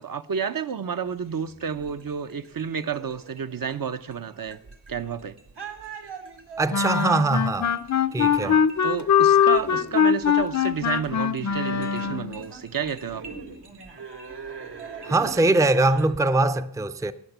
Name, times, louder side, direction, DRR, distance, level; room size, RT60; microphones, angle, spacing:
voice 1, 0.0-4.6 4.9-5.3 8.3-13.2, right 7 dB, 60° right, 0.6 m, -31 dB
sound 1, 1.1-16.1, right 4 dB, 80° right, 1.8 m, -43 dB
voice 2, 6.6-7.7 8.1-8.6 15.0-17.1, right 2 dB, 10° right, 0.4 m, -22 dB
sound 2, 6.7-12.4, left 8 dB, 45° left, 0.5 m, -22 dB
12.0 x 8.7 x 6.7 m
wide cardioid pair, 90°, 40 cm